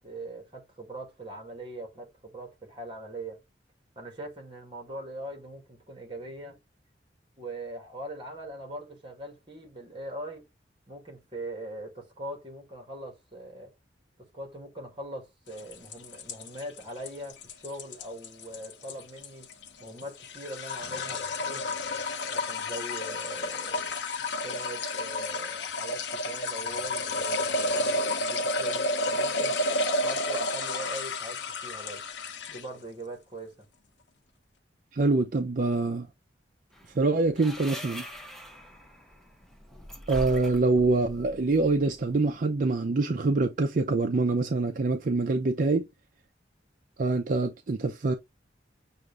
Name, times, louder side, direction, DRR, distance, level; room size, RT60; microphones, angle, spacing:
voice 1, 0.0-3.4 4.0-6.6 7.4-10.5 10.9-13.7 14.2-19.5 19.8-21.7 22.3-23.9 24.2-29.6 30.0-32.0 32.5-33.7, right 1 dB, 30° right, 1.7 m, -41 dB
sound 1, 15.6-32.8, left 2 dB, 70° left, 0.7 m, -31 dB
voice 2, 34.9-36.1 36.9-38.0 40.1-45.9 47.0-48.1, right 3 dB, 50° right, 0.5 m, -25 dB
sound 2, 36.7-42.4, equal, ahead, 0.7 m, -43 dB
6.3 x 2.5 x 3.3 m
head